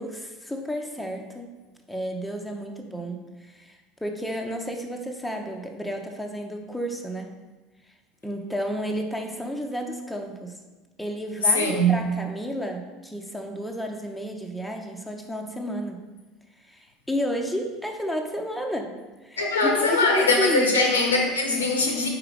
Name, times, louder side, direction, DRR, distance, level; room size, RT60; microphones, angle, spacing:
voice 1, 0.0-1.5 1.9-7.4 8.2-10.6 11.0-16.1 16.6-20.8, equal, 5° left, 2 dB, 0.8 m, -32 dB
voice 2, 11.4-12.0 19.4-22.1, left 2 dB, 80° left, 1 dB, 0.9 m, -21 dB
4.8 x 4.8 x 4.8 m, 1.2 s
figure-of-eight pair, 70°, 0 cm